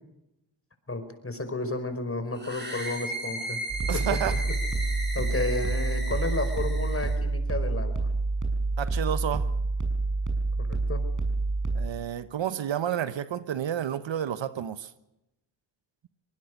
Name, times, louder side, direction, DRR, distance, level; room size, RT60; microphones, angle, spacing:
voice 1, 0.9-3.6 3.9-4.4 5.1-8.1 10.6-11.1, left 2 dB, 25° left, 5.1 m, -32 dB
sound 1, 2.4-7.2, right 1 dB, 20° right, 6.8 m, -36 dB
sound 2, 3.7-11.9, right 3 dB, 40° right, 6.2 m, -28 dB
voice 2, 3.9-4.3 8.8-9.5 11.7-14.9, right 10 dB, 65° right, 1.2 m, -30 dB
24.5 x 19.5 x 6.6 m
supercardioid pair, 55°, 48 cm